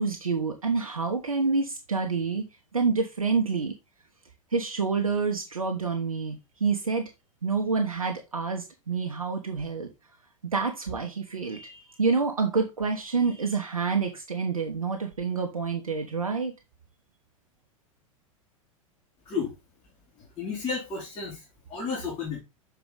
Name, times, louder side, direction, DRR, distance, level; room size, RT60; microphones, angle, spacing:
voice 1, 0.0-3.7 4.5-7.1 7.4-9.9 10.5-16.5, right 4 dB, 85° right, 4 dB, 1.0 m, -28 dB
voice 2, 19.2-19.5 20.2-22.4, left 5 dB, 30° left, -4 dB, 3.0 m, -33 dB
6.9 x 4.6 x 3.8 m, 0.25 s
figure-of-eight pair, 90°, 18 cm